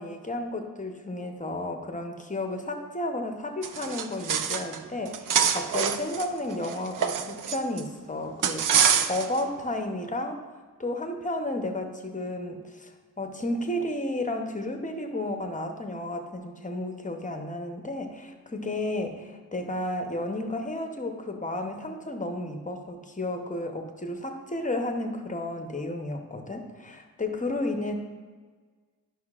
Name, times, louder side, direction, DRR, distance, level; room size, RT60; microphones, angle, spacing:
voice 1, 0.0-10.4 10.8-27.9, left 1 dB, 25° left, 4 dB, 0.8 m, -32 dB
sound 1, 3.6-4.8 5.1-7.8 8.4-9.4, right 8 dB, 70° right, 0.5 m, -25 dB
11.5 x 5.7 x 2.4 m, 1.5 s
wide cardioid pair, 95°, 33 cm